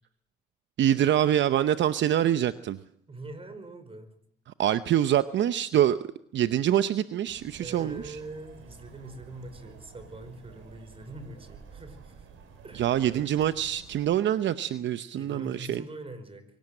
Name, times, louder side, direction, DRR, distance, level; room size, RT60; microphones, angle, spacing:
voice 1, 0.8-2.8 4.6-8.2 12.7-15.8, right 11 dB, 65° right, 13 dB, 0.8 m, -25 dB
voice 2, 3.1-4.1 7.6-12.3 12.6-13.3 15.2-16.5, right 2 dB, 30° right, 11 dB, 4.9 m, -43 dB
sound 1, 7.3-14.1, right 6 dB, 85° right, 4.8 m, -50 dB
24.0 x 17.0 x 7.8 m, 0.71 s
cardioid pair, 90°, 20 cm